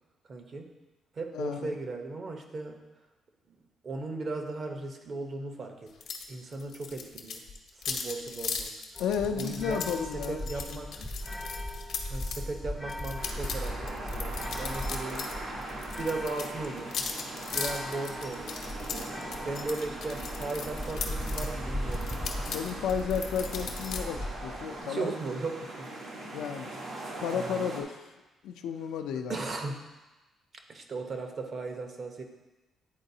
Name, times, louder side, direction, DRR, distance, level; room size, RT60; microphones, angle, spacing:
voice 1, 0.3-0.7 1.1-2.8 3.5-3.6 3.8-5.9 6.3-7.4 7.9-8.7 9.4-10.9 12.1-15.3 16.0-17.0 17.5-18.6 19.4-22.1 24.8-25.9 27.3-27.7 29.1-29.8 30.7-32.2, right 3 dB, 45° right, 4 dB, 0.9 m, -37 dB
voice 2, 1.3-1.7 9.0-10.8 22.5-25.1 26.3-26.8 27.2-28.0 28.4-29.4, left 7 dB, 90° left, 6 dB, 0.4 m, -33 dB
sound 1, 6.0-6.3 6.5-12.4 12.9-15.4 15.6-21.5 21.9-24.0, left 6 dB, 70° left, 0.8 m, -38 dB
sound 2, 8.9-24.8, equal, 5° left, 0.5 m, -38 dB
sound 3, 13.2-27.8, right 2 dB, 75° right, 1.2 m, -40 dB
9.8 x 3.9 x 2.7 m, 1.1 s
cardioid pair, 90°, 0 cm